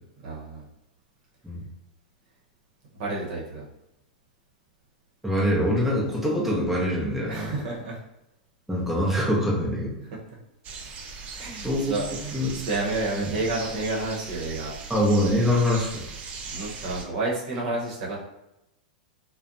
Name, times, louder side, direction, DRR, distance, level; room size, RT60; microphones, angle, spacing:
voice 1, 0.2-0.6 2.9-3.6 7.3-8.0 11.3-14.7 16.5-18.2, right 2 dB, 60° right, -4 dB, 0.9 m, -30 dB
voice 2, 5.2-7.5 8.7-10.0 11.6-12.0 12.3-12.5 13.2-13.3 14.9-16.0, equal, 5° right, -6 dB, 0.7 m, -24 dB
sound 1, 10.6-17.1, right 4 dB, 35° right, 0.4 m, -39 dB
2.5 x 2.1 x 2.5 m, 0.89 s
hypercardioid pair, 105°, 4 cm